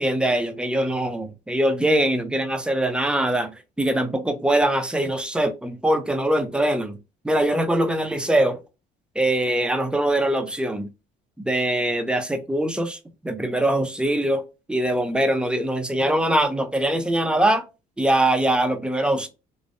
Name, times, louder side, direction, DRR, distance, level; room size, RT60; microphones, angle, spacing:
voice 1, 0.0-7.0 7.2-8.6 9.2-10.9 11.4-14.4 14.7-17.6 18.0-19.3, right 1 dB, 5° right, 0.4 m, -22 dB
2.5 x 2.0 x 2.4 m
cardioid pair, 110°, 17 cm